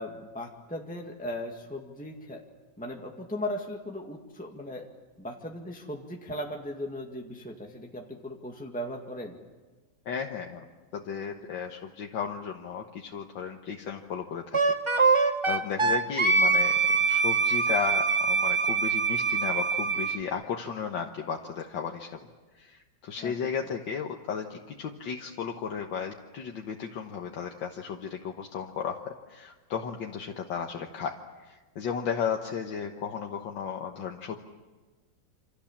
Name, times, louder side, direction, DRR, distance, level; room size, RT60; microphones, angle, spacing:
voice 1, 0.0-2.4 2.8-4.9 5.2-9.4 23.2-23.5, left 1 dB, 5° left, 1 dB, 1.8 m, -37 dB
voice 2, 10.1-10.7 10.9-14.6 15.0-22.1 22.6-31.2 31.4-34.4, left 7 dB, 75° left, 2 dB, 2.0 m, -34 dB
Wind instrument woodwind instrument, 14.5-20.2, right 4 dB, 20° right, 1.2 m, -24 dB
27.5 x 26.5 x 7.3 m, 1.3 s
omnidirectional pair, 2.0 m